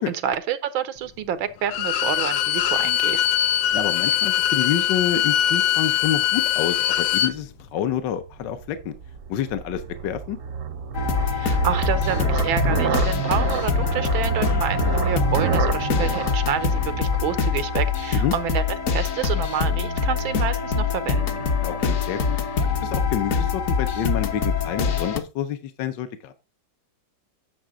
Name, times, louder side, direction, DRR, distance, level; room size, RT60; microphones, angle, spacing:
voice 1, 0.0-3.2 11.2-18.6 18.9-21.3, right 9 dB, 90° right, 1.7 m, -28 dB
Bowed string instrument, 1.6-7.3, left 11 dB, 85° left, 1.5 m, -22 dB
voice 2, 3.7-8.9 9.3-10.4 18.1-18.3 21.6-22.4 22.8-26.3, left 9 dB, 70° left, 1.4 m, -28 dB
sound 1, 8.2-17.7, right 7 dB, 55° right, 0.9 m, -27 dB
sound 2, 10.9-25.2, left 5 dB, 50° left, 1.1 m, -24 dB
9.4 x 6.7 x 3.7 m
omnidirectional pair, 2.1 m